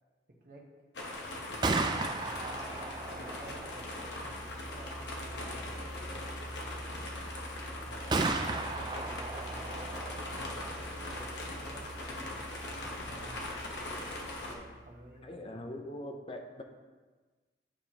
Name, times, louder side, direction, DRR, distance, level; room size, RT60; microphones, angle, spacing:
sound 1, 0.9-14.5, left 1 dB, 90° left, 1.0 m, -41 dB
Gunshot gunfire, 1.4-15.2, right 3 dB, 25° right, 0.3 m, -38 dB
voice 1, 1.5-6.8 7.8-10.8 11.1-13.4 14.4-15.6, right 1 dB, 50° right, -2 dB, 1.1 m, -53 dB
voice 2, 15.2-16.6, left 1 dB, 30° left, 4 dB, 0.5 m, -42 dB
8.9 x 4.8 x 2.9 m, 1.3 s
head